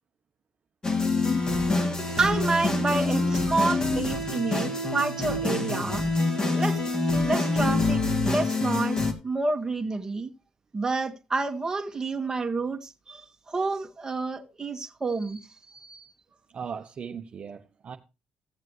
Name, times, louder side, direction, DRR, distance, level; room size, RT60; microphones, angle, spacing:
sound 1, 0.8-9.1, left 3 dB, 30° left, 2.5 m, -26 dB
voice 1, 2.2-6.1 6.4-10.3 10.7-15.5 15.7-16.1, right 3 dB, 20° right, 1.9 m, -29 dB
voice 2, 16.5-18.0, right 6 dB, 45° right, 1.1 m, -38 dB
16.0 x 7.4 x 3.2 m
supercardioid pair, 80°, 3 cm